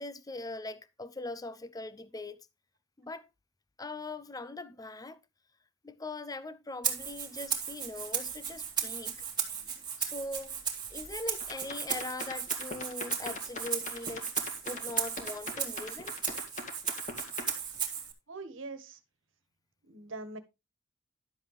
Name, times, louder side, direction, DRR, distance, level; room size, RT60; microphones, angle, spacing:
voice 1, 0.0-2.4 3.0-3.3 3.8-5.2 5.8-9.2 10.0-10.6 10.9-16.1, left 2 dB, 20° left, 0.6 m, -41 dB
Rattle (instrument), 6.8-18.1, right 7 dB, 25° right, 2.1 m, -36 dB
sound 1, 11.4-17.5, left 2 dB, 40° left, 2.3 m, -41 dB
voice 2, 18.3-19.0 19.9-20.4, right 3 dB, 85° right, 1.5 m, -42 dB
11.5 x 7.3 x 3.3 m
head